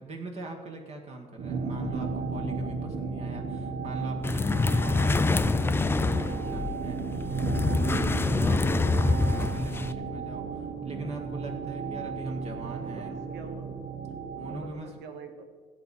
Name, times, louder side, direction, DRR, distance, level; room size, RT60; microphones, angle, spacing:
voice 1, 0.0-13.1 14.3-14.9, right 2 dB, 40° right, 1 dB, 1.6 m, -41 dB
sound 1, 1.4-14.7, right 4 dB, 60° right, 1.1 m, -34 dB
sound 2, 4.2-9.9, left 3 dB, 15° left, 0.4 m, -26 dB
voice 2, 12.6-13.7 14.4-15.5, right 5 dB, 85° right, 7 dB, 1.5 m, -45 dB
16.5 x 7.5 x 4.2 m, 1.5 s
cardioid pair, 110°, 17 cm